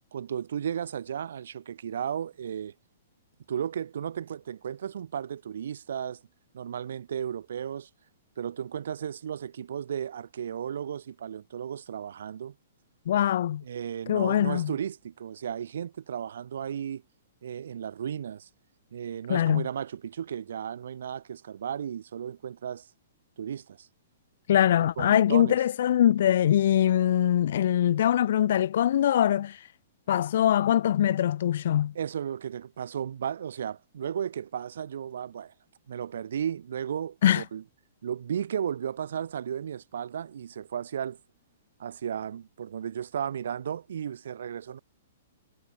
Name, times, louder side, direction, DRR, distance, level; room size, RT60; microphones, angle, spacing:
voice 1, 0.1-2.7 3.5-6.2 6.5-7.9 8.4-12.5 13.6-17.0 17.4-18.5 18.9-22.9 23.4-23.9 24.8-25.6 31.9-35.5 35.9-37.6 38.0-41.2 41.8-44.8, right 8 dB, 65° right, 0.6 m, -34 dB
voice 2, 13.1-13.6 14.1-14.7 19.3-19.7 24.5-29.6 30.1-31.9 37.2-37.4, left 11 dB, 60° left, 0.7 m, -23 dB
figure-of-eight pair, 115°, 0 cm